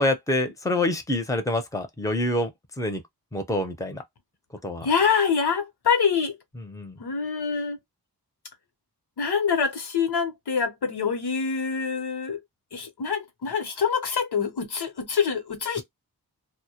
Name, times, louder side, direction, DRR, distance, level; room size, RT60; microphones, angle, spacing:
voice 1, 0.0-3.0 3.3-4.0 4.6-4.9 6.6-7.0 15.8-15.9, left 1 dB, 10° left, 0.6 m, -26 dB
voice 2, 4.8-6.4 7.0-7.8 9.2-12.4 12.7-15.8, left 6 dB, 80° left, 0.8 m, -25 dB
2.1 x 2.1 x 2.8 m
wide cardioid pair, 60°, 39 cm